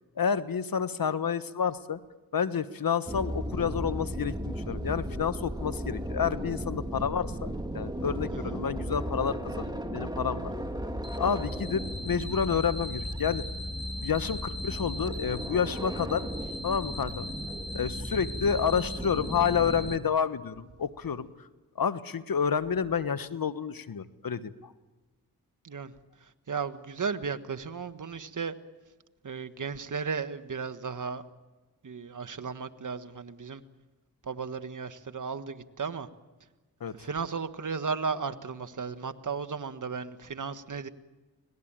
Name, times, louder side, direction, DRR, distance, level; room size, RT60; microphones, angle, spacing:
voice 1, 0.2-2.0 2.3-10.5 11.2-13.4 14.0-16.3 16.6-17.3 17.7-21.3 21.8-24.7 36.8-36.9, left 7 dB, 55° left, 13 dB, 1.3 m, -29 dB
sound 1, 3.1-20.0, equal, 10° right, 2.5 m, -35 dB
voice 2, 8.3-8.6 25.6-25.9 26.2-28.5 29.2-31.2 31.8-33.6 34.2-36.1 36.9-40.9, right 5 dB, 50° right, 9 dB, 1.5 m, -35 dB
25.5 x 18.0 x 8.9 m, 1.2 s
supercardioid pair, 40°, 40 cm